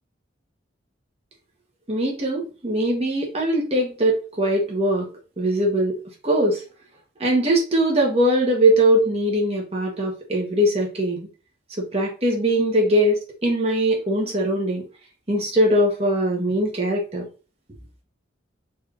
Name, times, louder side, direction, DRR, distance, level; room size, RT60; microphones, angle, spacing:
voice 1, 1.9-5.1 5.4-6.0 6.2-6.6 7.2-11.3 11.8-14.8 15.3-17.2, right 1 dB, 30° right, 0 dB, 1.1 m, -21 dB
4.1 x 3.3 x 2.5 m, 0.34 s
head